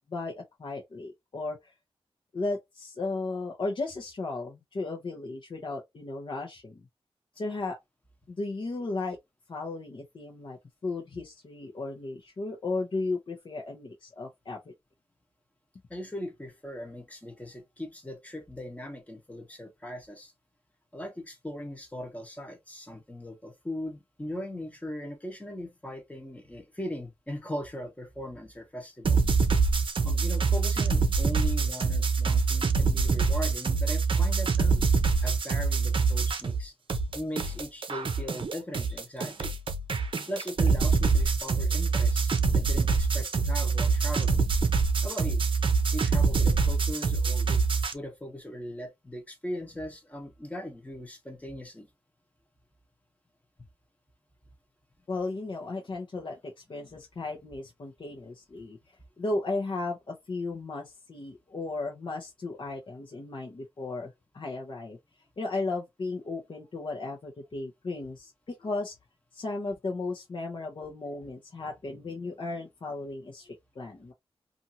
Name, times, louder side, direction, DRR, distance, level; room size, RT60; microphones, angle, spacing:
voice 1, 0.1-1.7 2.3-6.9 7.3-7.8 8.3-9.2 9.5-14.7 55.1-56.4 56.7-58.8 59.2-65.0 65.4-68.9 69.3-74.1, left 3 dB, 55° left, 0.8 m, -35 dB
voice 2, 15.9-20.3 20.9-29.2 30.0-34.8 35.2-36.7 37.1-39.5 40.0-44.4 45.0-45.4 45.9-47.6 47.9-51.9 56.8-57.0, equal, 15° left, 1.1 m, -39 dB
sound 1, 29.0-36.6 36.9-47.9, right 4 dB, 55° right, 0.6 m, -25 dB
2.7 x 2.6 x 2.7 m
wide cardioid pair, 95°, 10 cm